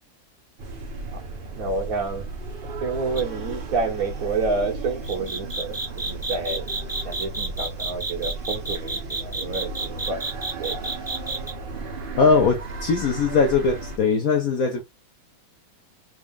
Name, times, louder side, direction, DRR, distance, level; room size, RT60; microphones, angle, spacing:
sound 1, 0.6-14.0, right 2 dB, 90° right, 0.4 m, -35 dB
voice 1, 1.6-2.2 2.8-5.8 6.0-6.7 7.0-9.7 10.1-10.2 10.6-10.8, right 4 dB, 65° right, 0.9 m, -28 dB
sound 2, 3.2-3.4 5.0-11.5, right 2 dB, 15° right, 0.7 m, -30 dB
voice 2, 12.2-14.8, left 5 dB, 65° left, 0.9 m, -20 dB
3.6 x 2.4 x 3.5 m
omnidirectional pair, 2.2 m